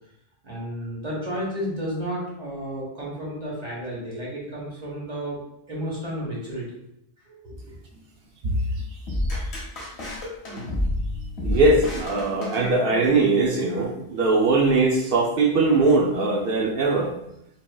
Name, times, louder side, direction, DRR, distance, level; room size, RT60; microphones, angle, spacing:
voice 1, 0.4-5.4 5.7-6.6 7.3-7.8, equal, 40° right, -5 dB, 1.3 m, -32 dB
sound 1, 9.1-13.2, left 1 dB, 75° left, 1.4 m, -29 dB
voice 2, 11.4-17.1, right 3 dB, 60° right, -1 dB, 0.8 m, -21 dB
5.1 x 2.8 x 2.3 m, 0.79 s
omnidirectional pair, 1.1 m